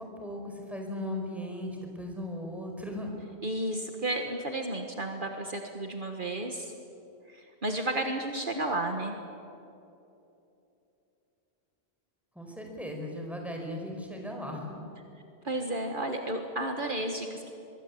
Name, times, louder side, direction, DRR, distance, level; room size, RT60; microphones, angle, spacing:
voice 1, 0.0-3.1 12.3-14.8, left 1 dB, ahead, 1 dB, 4.8 m, -37 dB
voice 2, 3.4-6.7 7.3-9.2 15.4-17.5, right 1 dB, 55° right, 4 dB, 1.7 m, -32 dB
24.0 x 22.5 x 8.5 m, 2.8 s
omnidirectional pair, 1.0 m